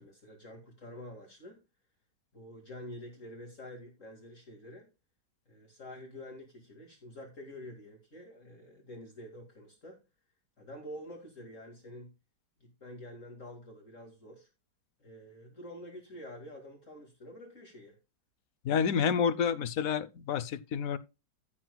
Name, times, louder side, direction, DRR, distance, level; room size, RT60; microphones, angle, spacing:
voice 1, 0.0-1.6 2.3-4.9 5.5-10.0 10.6-12.1 12.6-14.5 15.0-18.0, left 1 dB, 45° left, 2.6 m, -48 dB
voice 2, 18.6-21.0, left 7 dB, 60° left, 1.0 m, -29 dB
14.5 x 7.6 x 2.2 m
omnidirectional pair, 1.9 m